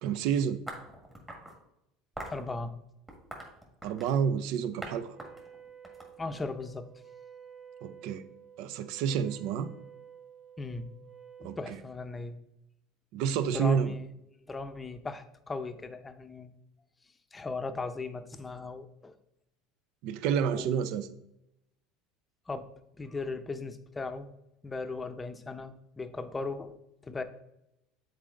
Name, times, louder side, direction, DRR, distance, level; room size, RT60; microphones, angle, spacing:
voice 1, 0.0-0.6 3.8-5.1 7.8-8.2 8.6-9.7 11.4-11.6 13.1-13.9 20.0-21.1, right 7 dB, 70° right, 14 dB, 0.5 m, -29 dB
sound 1, 0.7-1.6 2.2-2.4 3.1-4.2 4.8-4.9 5.2-6.6, right 1 dB, 15° right, 1.8 m, -43 dB
voice 2, 2.3-2.8 6.2-6.9 10.6-11.0 11.4-12.4 13.4-14.1 14.5-16.5 17.3-19.1 20.5-20.8 22.5-22.7 23.0-24.3 24.6-26.7 27.0-27.2, left 3 dB, 20° left, 10 dB, 0.6 m, -37 dB
Wind instrument woodwind instrument, 5.1-11.7, right 7 dB, 35° right, 2.2 m, -52 dB
7.4 x 4.0 x 3.8 m, 0.85 s
supercardioid pair, 90°, 0 cm